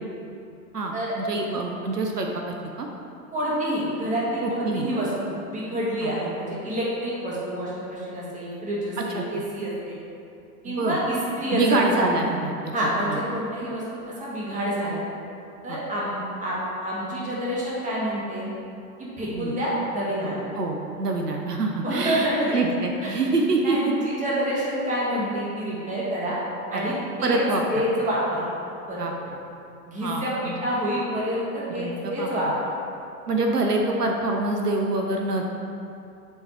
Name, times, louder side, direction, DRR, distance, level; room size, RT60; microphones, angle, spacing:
voice 1, 0.7-2.9 4.4-4.9 6.0-6.1 9.0-9.2 10.7-11.0 11.5-12.5 13.1-13.2 15.7-15.8 19.3-19.6 20.6-23.9 25.2-25.3 26.7-26.9 27.2-27.8 29.0-29.1 30.0-30.5 31.8-32.3 33.3-35.4, right 2 dB, 80° right, 1 dB, 0.7 m, -26 dB
voice 2, 3.3-10.0 10.6-12.3 12.7-15.0 15.6-16.6 16.8-18.4 19.0-20.4 21.8-22.5 23.0-23.2 23.6-26.4 26.7-27.4 27.7-28.5 28.9-29.1 29.9-32.5, equal, 15° right, -6 dB, 1.5 m, -28 dB
7.6 x 3.4 x 4.3 m, 2.6 s
figure-of-eight pair, 95°, 47 cm